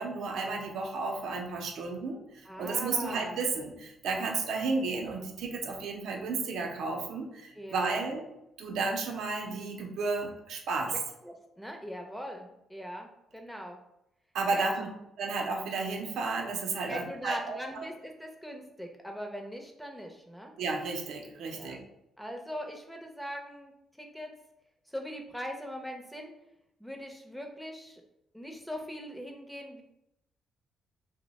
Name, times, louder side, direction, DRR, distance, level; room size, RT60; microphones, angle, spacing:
voice 1, 0.0-8.2 8.6-10.9 14.3-14.9 15.2-17.9 20.6-21.8, right 4 dB, 75° right, 2 dB, 0.6 m, -32 dB
voice 2, 2.5-3.4 7.6-8.1 10.9-11.0 11.2-13.8 14.5-14.9 16.9-20.5 21.5-21.8 22.2-23.7 24.0-24.3 24.9-26.3 26.8-28.0 28.3-29.8, equal, ahead, 2 dB, 0.6 m, -41 dB
2.9 x 2.1 x 4.0 m, 0.85 s
cardioid pair, 90°, 0 cm